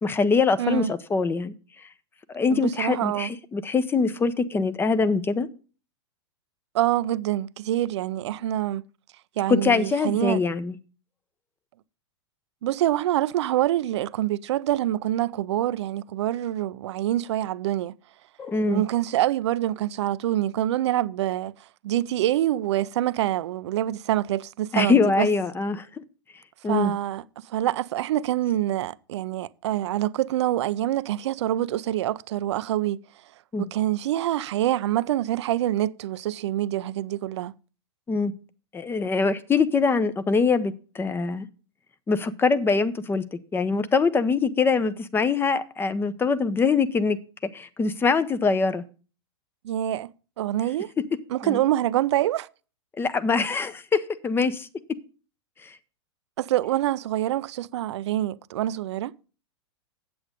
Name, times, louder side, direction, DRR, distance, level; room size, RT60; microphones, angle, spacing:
voice 1, 0.0-1.5 2.3-5.5 9.5-10.7 18.4-18.8 24.7-25.9 26.6-26.9 33.5-33.7 38.1-38.3 38.7-41.5 42.1-43.2 43.5-47.2 47.5-48.8 51.4-51.6 53.0-54.7 55.6-55.7, left 4 dB, 15° left, 0.7 m, -23 dB
voice 2, 0.6-0.9 2.5-3.3 6.7-8.8 9.4-10.4 12.6-17.9 18.7-21.5 21.8-25.3 26.7-33.0 33.6-37.5 49.6-50.1 50.4-50.9 51.3-52.5 56.4-59.1, right 13 dB, 65° right, 0.5 m, -26 dB
8.5 x 7.9 x 5.1 m
hypercardioid pair, 115°, 15 cm